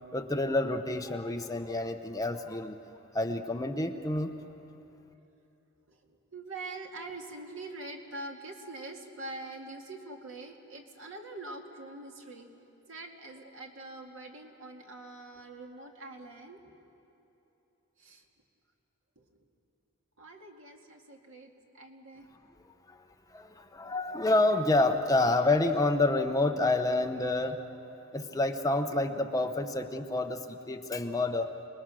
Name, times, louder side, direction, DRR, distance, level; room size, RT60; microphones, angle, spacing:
voice 1, 0.1-2.8 3.1-4.3 22.9-23.0 23.3-27.6 28.1-31.5, left 2 dB, 15° left, 5 dB, 0.9 m, -28 dB
voice 2, 5.9-12.5 12.9-16.6 18.0-18.3 19.2-19.3 20.2-22.3, right 2 dB, 75° right, 2 dB, 2.1 m, -44 dB
28.0 x 20.0 x 6.3 m, 3.0 s
head